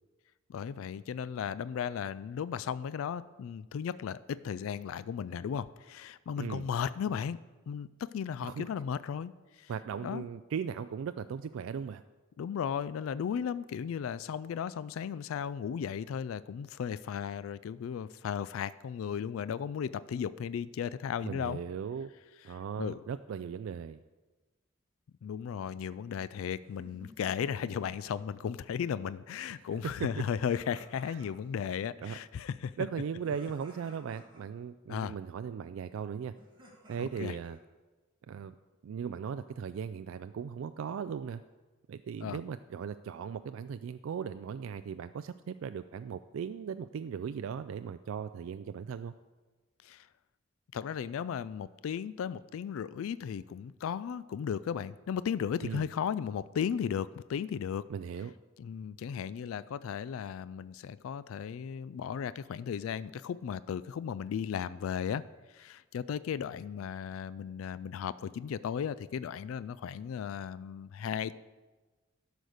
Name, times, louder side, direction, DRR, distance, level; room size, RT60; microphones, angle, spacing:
voice 1, 0.5-7.4 7.7-9.7 10.0-10.3 12.4-21.6 22.5-23.0 25.2-32.7 34.9-35.2 37.0-37.4 42.2-42.4 49.8-50.1 50.7-57.8 58.6-65.2 65.5-71.3, left 7 dB, 80° left, 17 dB, 0.3 m, -35 dB
voice 2, 9.7-12.0 21.2-22.1 22.4-24.0 29.8-30.2 31.0-31.2 32.0-32.2 32.8-36.3 36.9-37.6 38.3-38.5 38.8-41.4 41.9-49.1 55.6-55.9 57.9-58.3, right 7 dB, 75° right, 11 dB, 0.3 m, -38 dB
sound 1, 26.6-28.1 30.4-31.6 33.2-34.4 36.3-37.5, equal, 25° right, 2.0 m, -56 dB
12.0 x 5.1 x 6.4 m, 1.2 s
head